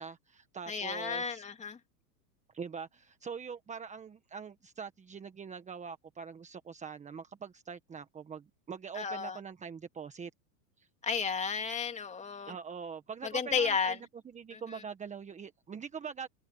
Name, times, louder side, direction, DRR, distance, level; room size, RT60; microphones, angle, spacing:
voice 1, 0.0-1.4 2.5-10.3 10.8-10.9 12.5-14.0 14.2-16.3, right 6 dB, 15° right, 1.4 m, -43 dB
voice 2, 0.7-1.8 8.9-9.4 11.0-12.5 13.2-14.0 14.5-14.8, left 6 dB, 15° left, 2.5 m, -33 dB
supercardioid pair, 135°, 48 cm